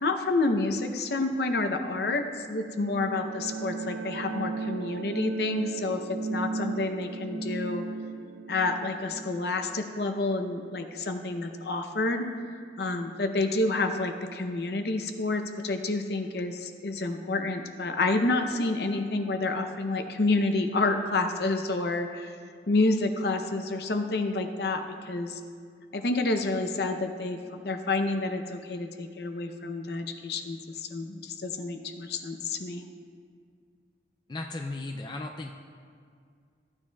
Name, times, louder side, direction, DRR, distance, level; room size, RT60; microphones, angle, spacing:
voice 1, 0.0-7.9 8.5-12.3 12.5-22.4 22.7-25.4 25.9-32.8, left 2 dB, 60° left, 6 dB, 0.7 m, -29 dB
sound 1, 2.3-10.9, right 3 dB, 80° right, 0.5 m, -36 dB
voice 2, 34.3-35.5, left 2 dB, 25° left, 2 dB, 0.4 m, -35 dB
15.0 x 9.7 x 2.3 m, 2.2 s
head